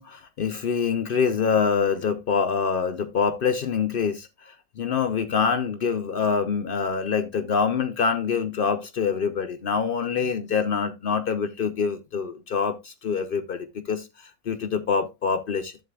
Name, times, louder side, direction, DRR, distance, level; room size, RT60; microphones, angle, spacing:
voice 1, 0.0-15.8, left 6 dB, 80° left, 0.5 m, -25 dB
11.0 x 7.4 x 2.3 m
omnidirectional pair, 1.7 m